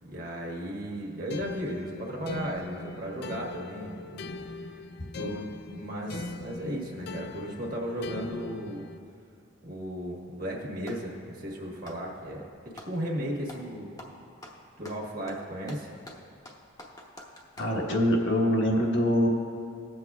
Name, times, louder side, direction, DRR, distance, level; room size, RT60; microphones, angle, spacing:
voice 1, 0.0-4.2 4.7-4.8 5.2-8.8 9.6-13.9 14.8-15.9, equal, 45° right, -3 dB, 1.4 m, -35 dB
sound 1, 1.3-9.0, left 3 dB, 50° left, 0.4 m, -40 dB
Clapping, 10.3-11.1 11.7-13.0 13.4-13.7 14.0-17.8, left 1 dB, 20° left, 0.8 m, -47 dB
voice 2, 17.6-19.3, equal, 70° left, -1 dB, 1.4 m, -24 dB
19.0 x 7.8 x 2.4 m, 2.4 s
head